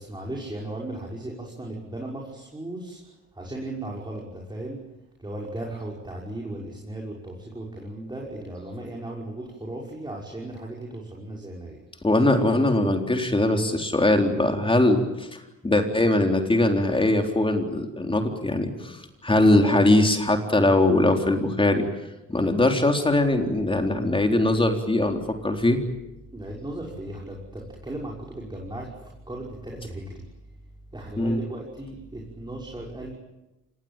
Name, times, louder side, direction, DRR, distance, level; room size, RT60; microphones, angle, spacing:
voice 1, 0.0-3.0 3.3-4.8 5.2-11.8 26.3-30.2 30.9-33.1, right 1 dB, 15° right, -2 dB, 6.2 m, -36 dB
voice 2, 12.0-21.8 22.3-25.8 31.2-31.4, left 2 dB, 15° left, 4 dB, 3.9 m, -21 dB
26.5 x 21.0 x 9.1 m, 0.98 s
cardioid pair, 90°, 30 cm